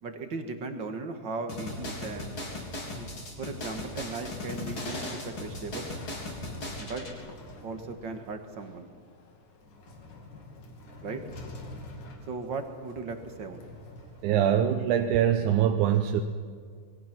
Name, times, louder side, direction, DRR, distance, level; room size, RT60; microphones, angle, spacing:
voice 1, 0.0-2.4 2.9-3.1 3.4-5.9 6.8-7.1 7.6-8.9 11.0-11.2 12.3-13.6, right 4 dB, 45° right, 6 dB, 2.1 m, -37 dB
sound 1, 1.5-7.1, left 2 dB, 40° left, 4.5 m, -37 dB
sound 2, 3.3-15.2, left 2 dB, 80° left, 4.1 m, -47 dB
voice 2, 14.2-16.2, right 10 dB, 90° right, 6 dB, 2.4 m, -23 dB
27.0 x 21.5 x 6.2 m, 2.1 s
omnidirectional pair, 3.4 m